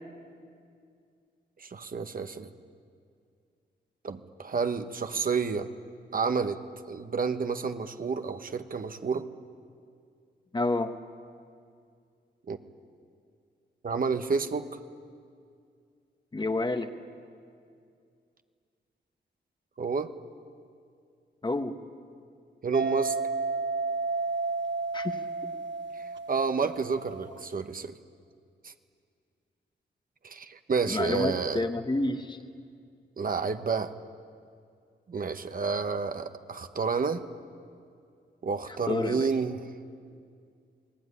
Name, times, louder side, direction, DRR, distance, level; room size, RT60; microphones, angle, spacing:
voice 1, 1.6-2.5 4.0-5.7 6.1-6.6 6.9-9.3 12.5-12.6 13.8-14.8 19.8-20.1 22.6-23.2 26.0-27.9 28.6-28.7 30.2-31.6 33.2-33.9 35.1-37.2 38.4-39.7, right 5 dB, 50° right, 8 dB, 1.2 m, -30 dB
voice 2, 10.5-11.0 16.3-16.9 21.4-21.8 24.9-25.2 30.9-32.4 38.9-39.3, left 2 dB, 25° left, 7 dB, 1.3 m, -29 dB
sound 1, 22.7-27.5, right 3 dB, 80° right, 1.0 m, -32 dB
29.0 x 20.0 x 9.8 m, 2.3 s
wide cardioid pair, 140°, 19 cm